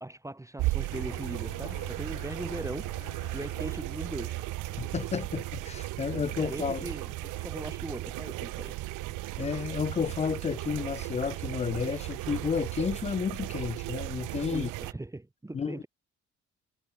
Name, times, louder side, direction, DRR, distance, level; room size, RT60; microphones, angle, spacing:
voice 1, 0.0-2.9 3.3-4.5 6.1-8.8 14.5-15.9, right 2 dB, 10° right, 1.0 m, -39 dB
sound 1, 0.6-14.9, right 20 dB, 90° right, 0.5 m, -36 dB
sound 2, 0.9-14.0, left 15 dB, 90° left, 6.8 m, -53 dB
voice 2, 4.8-6.9 9.4-14.7 15.5-15.8, left 6 dB, 25° left, 0.4 m, -31 dB
cardioid pair, 90°, 30 cm